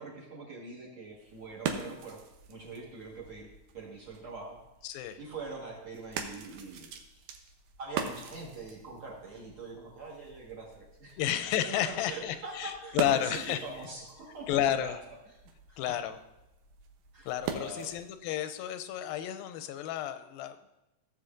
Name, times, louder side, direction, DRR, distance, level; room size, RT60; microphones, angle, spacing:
voice 1, 0.0-2.2 2.5-3.5 3.7-4.6 5.2-6.9 7.1-7.3 7.8-11.2 11.8-14.9 15.7-15.9 17.1-17.9, right 3 dB, 45° right, -5 dB, 2.0 m, -43 dB
sound 1, 1.0-18.2, right 6 dB, 80° right, 2.4 m, -43 dB
voice 2, 4.8-5.2 11.2-13.6 14.5-15.0 15.8-16.2 17.3-20.7, left 11 dB, 85° left, 10 dB, 2.4 m, -31 dB
15.5 x 7.7 x 2.6 m, 0.96 s
omnidirectional pair, 4.1 m